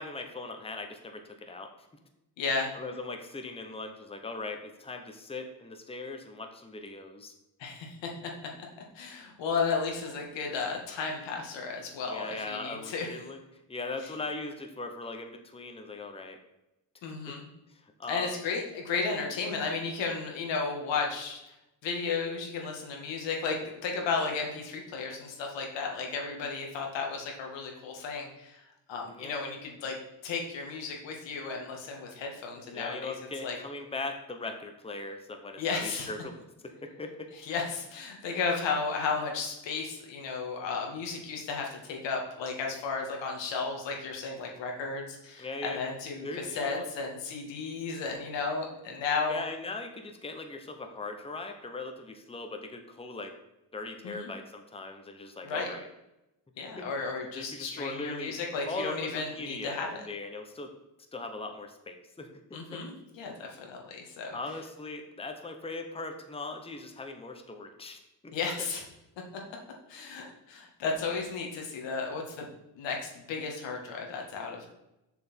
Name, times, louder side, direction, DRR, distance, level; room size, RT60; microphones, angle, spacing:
voice 1, 0.0-1.7 2.7-7.3 12.1-13.4 13.7-16.4 18.0-18.3 29.1-29.4 32.7-36.4 36.8-37.3 45.4-45.8 46.2-46.9 49.3-53.3 53.7-55.9 56.8-56.9 57.3-58.4 58.7-60.7 61.1-62.8 64.3-68.3, left 3 dB, 15° left, 5 dB, 1.0 m, -39 dB
voice 2, 2.4-2.7 7.6-8.1 9.0-13.1 14.0-14.1 17.0-17.5 18.1-21.5 21.8-29.9 30.2-33.1 33.4-33.6 35.6-36.1 37.4-49.4 54.0-54.3 55.4-55.7 56.6-60.0 62.5-64.4 68.3-68.8 69.9-72.5 72.8-74.7, left 4 dB, 85° left, 1 dB, 1.9 m, -34 dB
6.9 x 6.3 x 4.5 m, 0.91 s
cardioid pair, 95°, 43 cm